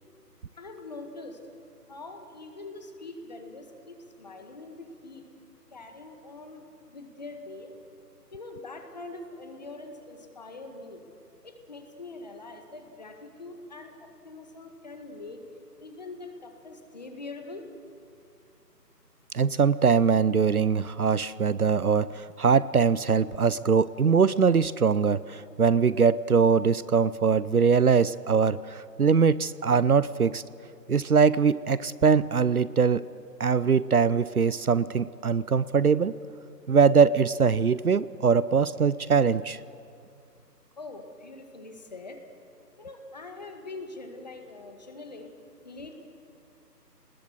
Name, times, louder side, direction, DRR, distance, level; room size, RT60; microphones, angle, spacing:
voice 1, 0.6-1.4 1.9-5.3 5.7-7.7 8.3-11.0 11.4-15.4 15.8-17.7 40.8-42.2 42.8-45.3 45.6-45.9, left 3 dB, 25° left, 5 dB, 1.8 m, -43 dB
voice 2, 19.3-30.4 30.9-33.0 33.4-36.1 36.7-39.6, right 6 dB, 60° right, 18 dB, 0.7 m, -22 dB
29.0 x 20.5 x 8.0 m, 2.4 s
figure-of-eight pair, 170°, 49 cm